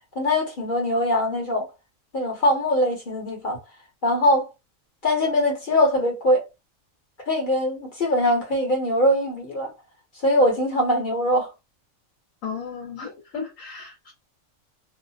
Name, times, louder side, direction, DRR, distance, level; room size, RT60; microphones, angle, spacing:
voice 1, 0.2-1.6 2.1-3.6 4.0-4.5 5.0-6.4 7.3-9.7 10.2-11.5, left 1 dB, 40° left, 1.0 m, -22 dB
voice 2, 12.4-14.1, left 5 dB, 75° left, 1.3 m, -34 dB
2.7 x 2.1 x 2.7 m
omnidirectional pair, 1.4 m